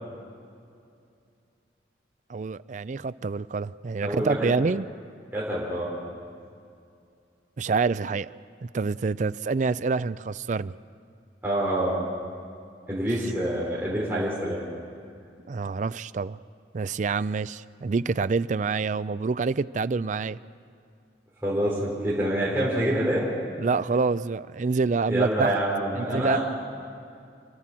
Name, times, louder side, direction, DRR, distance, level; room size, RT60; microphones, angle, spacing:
voice 1, 2.3-4.9 7.6-8.3 8.6-10.7 15.5-16.4 16.7-20.4 23.6-25.5 26.0-26.4, right 4 dB, 45° right, 16 dB, 0.4 m, -27 dB
voice 2, 4.0-4.5 5.3-5.9 11.4-11.9 12.9-14.6 21.4-23.3 25.1-26.4, right 1 dB, 10° right, -7 dB, 3.8 m, -26 dB
28.0 x 13.0 x 7.5 m, 2.4 s
head